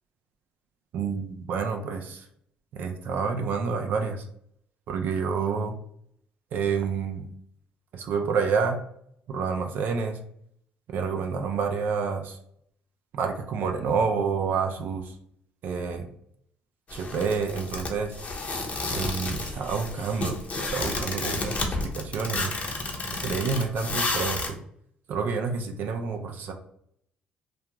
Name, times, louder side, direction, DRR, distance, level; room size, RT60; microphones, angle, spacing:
voice 1, 0.9-2.3 2.8-4.2 4.9-5.7 6.5-7.2 7.9-8.8 9.3-10.2 10.9-12.4 13.1-15.1 15.6-16.1 16.9-18.1 18.9-20.4 20.7-22.5 23.2-24.6 25.1-26.5, right 5 dB, 65° right, 4 dB, 0.4 m, -28 dB
sound 1, 16.9-24.5, left 3 dB, 40° left, 0.7 m, -31 dB
2.3 x 2.3 x 2.9 m, 0.68 s
supercardioid pair, 75°, 4 cm